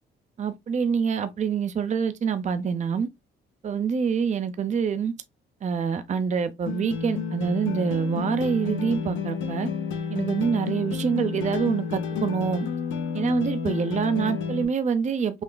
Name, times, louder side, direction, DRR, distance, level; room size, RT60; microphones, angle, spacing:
voice 1, 0.4-3.1 3.6-5.1 5.6-9.7 10.1-12.7 13.1-15.4, right 6 dB, 35° right, 0.5 m, -26 dB
sound 1, 6.7-14.7, left 6 dB, 80° left, 0.6 m, -30 dB
5.7 x 2.1 x 2.2 m
cardioid pair, 90°, 20 cm